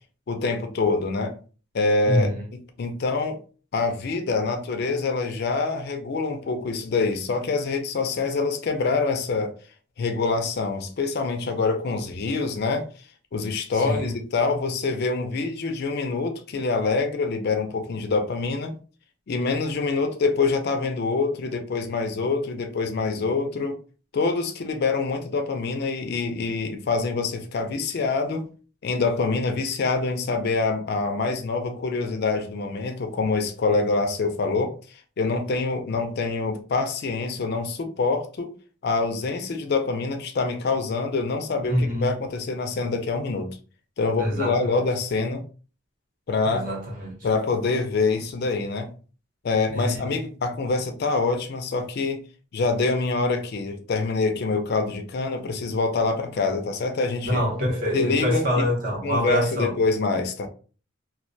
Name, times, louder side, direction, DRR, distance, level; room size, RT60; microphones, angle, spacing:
voice 1, 0.3-1.3 1.7-2.3 2.8-3.4 3.7-9.5 10.0-12.9 13.3-18.8 19.3-23.8 24.1-28.5 28.8-38.5 38.8-43.6 44.0-45.4 46.3-46.7 47.2-48.9 49.4-52.2 52.5-57.4 57.9-58.7 59.0-60.5, left 3 dB, 50° left, 0.4 m, -25 dB
voice 2, 2.1-2.4 13.7-14.2 41.6-42.2 44.2-44.8 46.5-47.2 49.7-50.2 57.3-59.7, equal, 45° right, 0.8 m, -26 dB
2.2 x 2.1 x 2.5 m
head